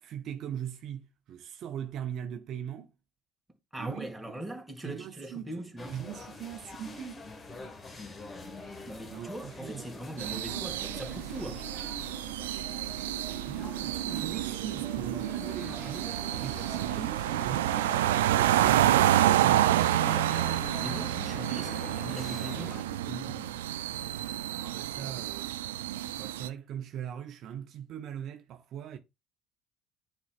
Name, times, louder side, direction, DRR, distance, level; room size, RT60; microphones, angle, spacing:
voice 1, 0.0-2.9 3.8-4.3 4.8-7.2 9.1-10.3 13.4-19.7 24.5-25.6 26.2-29.0, right 9 dB, 60° right, 0.7 m, -41 dB
voice 2, 3.7-6.0 8.9-11.7 19.3-23.6, right 1 dB, 5° right, 1.9 m, -41 dB
sound 1, 5.8-22.8, left 2 dB, 30° left, 1.4 m, -45 dB
sound 2, 10.2-26.5, right 13 dB, 85° right, 0.3 m, -29 dB
sound 3, 11.5-20.2, right 3 dB, 25° right, 1.5 m, -51 dB
9.5 x 4.4 x 2.4 m
hypercardioid pair, 70°, 0 cm